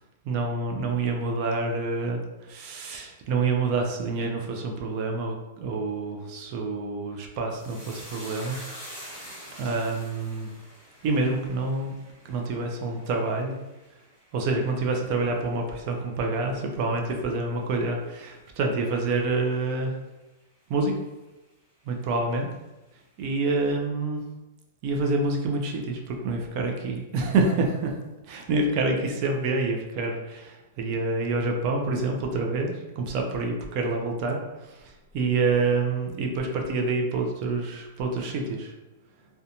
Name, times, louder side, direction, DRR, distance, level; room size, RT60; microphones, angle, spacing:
voice 1, 0.2-8.6 9.6-10.5 11.0-11.9 12.2-13.6 14.3-20.0 20.7-20.9 21.9-22.5 23.2-24.2 24.8-27.9 28.2-38.7, right 3 dB, 30° right, 2 dB, 0.3 m, -27 dB
sound 1, 7.5-16.1 16.4-17.1 17.4-17.6, equal, 5° right, 1.5 m, -46 dB
2.5 x 2.1 x 2.8 m, 1.1 s
supercardioid pair, 175°, 0 cm